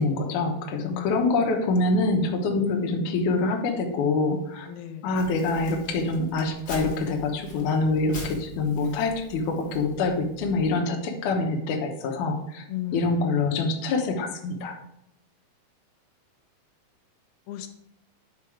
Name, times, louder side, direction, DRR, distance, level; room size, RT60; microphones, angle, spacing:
voice 1, 0.0-4.7 5.0-12.6 12.9-14.8, left 3 dB, 65° left, 2 dB, 2.2 m, -25 dB
voice 2, 0.8-1.3 4.7-5.1 12.7-13.2 17.5-17.7, left 11 dB, 90° left, 7 dB, 2.8 m, -35 dB
Crumpling crinkling, 5.1-10.7, left 2 dB, 45° left, 1.1 m, -43 dB
9.4 x 4.4 x 4.9 m, 0.82 s
omnidirectional pair, 4.4 m